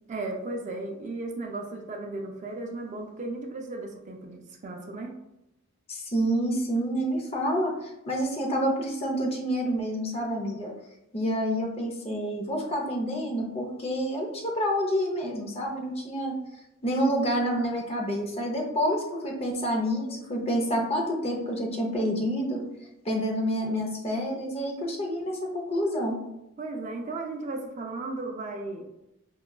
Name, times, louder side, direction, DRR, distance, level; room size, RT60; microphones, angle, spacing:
voice 1, 0.1-5.1 26.6-28.8, right 2 dB, 35° right, 2 dB, 0.4 m, -35 dB
voice 2, 5.9-10.7 11.1-16.4 16.8-22.6 23.0-26.3, equal, 30° left, 0 dB, 0.6 m, -28 dB
4.7 x 2.2 x 2.3 m, 0.87 s
head